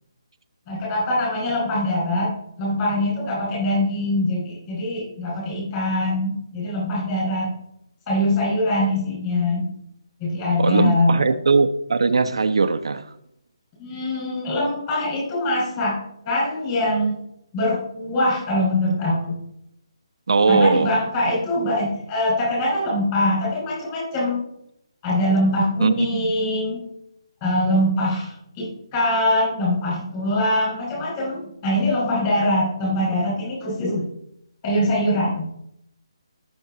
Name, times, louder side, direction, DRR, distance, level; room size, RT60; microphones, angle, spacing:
voice 1, 0.7-2.3 2.6-7.5 8.1-9.7 10.2-11.1 13.8-16.0 16.2-17.2 17.5-19.4 20.5-24.4 25.0-26.8 27.4-34.0 34.6-35.4, left 1 dB, 15° left, 5.0 m, -23 dB
voice 2, 10.6-13.1 20.3-20.9 25.8-26.3, right 4 dB, 70° right, 0.9 m, -19 dB
17.5 x 7.1 x 3.9 m
hypercardioid pair, 175°, 3 cm